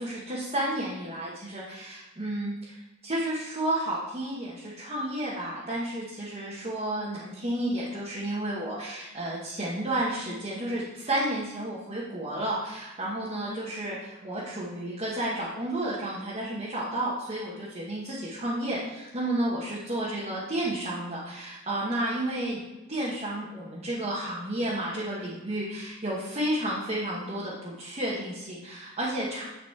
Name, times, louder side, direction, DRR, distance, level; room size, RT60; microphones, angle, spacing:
voice 1, 0.0-22.6 22.9-29.4, right 1 dB, 30° right, -7 dB, 1.2 m, -31 dB
9.8 x 4.1 x 4.6 m, 1.0 s
head